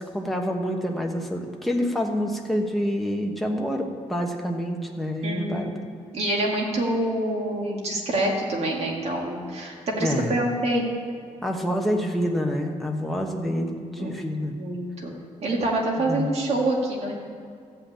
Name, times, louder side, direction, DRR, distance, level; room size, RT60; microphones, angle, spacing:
voice 1, 0.0-5.7 10.0-10.3 11.4-14.5 16.0-16.3, equal, ahead, 1 dB, 1.1 m, -27 dB
voice 2, 5.2-10.8 14.0-14.1 14.5-15.2 15.4-17.1, right 1 dB, 55° right, -1 dB, 2.1 m, -26 dB
13.5 x 5.7 x 8.7 m, 2.2 s
wide cardioid pair, 180°, 13 cm